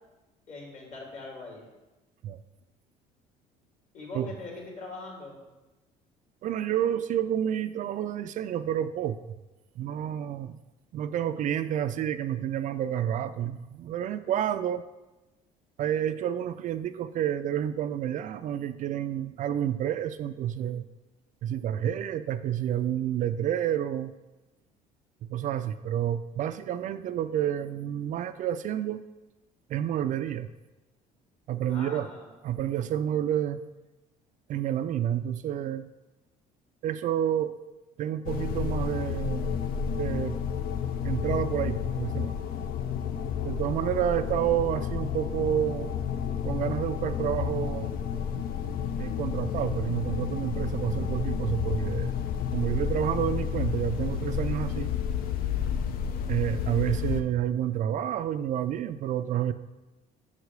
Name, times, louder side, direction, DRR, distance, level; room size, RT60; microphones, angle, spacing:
voice 1, 0.5-1.7 3.9-5.4 31.7-32.3, left 3 dB, 45° left, -1 dB, 2.7 m, -42 dB
voice 2, 6.4-9.2 9.8-10.6 10.9-14.8 15.8-20.8 21.4-24.1 25.3-29.0 29.7-30.5 31.5-32.1 32.4-33.6 34.5-35.9 36.8-37.5 38.0-39.6 40.0-40.4 41.0-42.3 43.4-46.0 46.4-48.0 49.0-52.1 52.5-54.9 56.3-59.5, right 10 dB, 55° right, 11 dB, 0.4 m, -29 dB
sound 1, 38.3-57.2, left 7 dB, 65° left, 0.6 m, -31 dB
5.6 x 4.8 x 6.5 m, 1.1 s
supercardioid pair, 95°, 16 cm